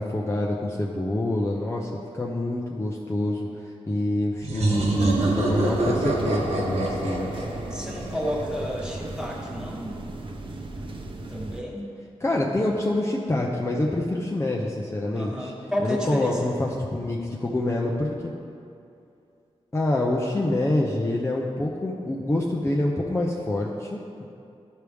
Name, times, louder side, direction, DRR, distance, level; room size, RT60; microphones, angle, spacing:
voice 1, 0.0-7.3 12.2-15.5 15.8-18.3 19.7-24.2, left 1 dB, 25° left, -3 dB, 0.7 m, -26 dB
sound 1, 4.4-9.0, right 2 dB, 75° right, 1.2 m, -25 dB
sound 2, 4.7-11.6, right 2 dB, 50° right, 0.8 m, -37 dB
voice 2, 7.7-10.0 11.3-11.9 15.1-16.5, equal, 5° right, -3 dB, 1.5 m, -31 dB
12.5 x 4.7 x 3.5 m, 2.6 s
wide cardioid pair, 85°, 11 cm